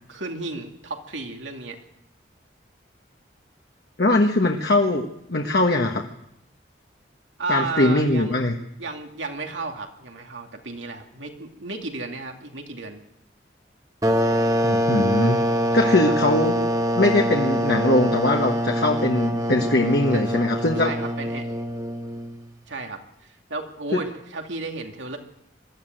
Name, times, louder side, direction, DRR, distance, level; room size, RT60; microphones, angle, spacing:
voice 1, 0.1-1.8 7.4-8.4 8.8-13.0 15.8-16.1 20.1-20.3 20.8-21.5 22.7-25.2, right 3 dB, 85° right, 3 dB, 2.6 m, -33 dB
voice 2, 4.0-6.1 7.5-8.5 14.6-15.4 15.7-16.6 16.9-20.9 23.9-24.0, left 2 dB, 60° left, 1 dB, 1.4 m, -21 dB
sound 1, 14.0-22.4, equal, 20° right, 1.1 m, -24 dB
22.0 x 13.5 x 9.1 m, 0.79 s
head